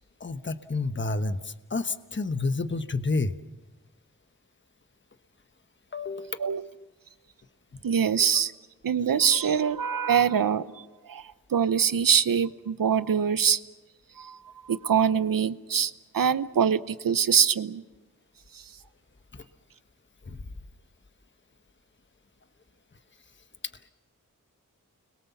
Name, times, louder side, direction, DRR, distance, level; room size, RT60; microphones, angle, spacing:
voice 1, 0.2-3.4 5.9-6.4 7.7-7.8 19.3-19.4 20.3-20.4, left 3 dB, 35° left, 10 dB, 1.2 m, -30 dB
voice 2, 7.8-8.5 8.8-13.6 14.2-14.4 14.6-17.8 18.5-18.7, right 7 dB, 90° right, 14 dB, 0.9 m, -24 dB
30.0 x 22.0 x 7.2 m, 1.2 s
cardioid pair, 40°, 33 cm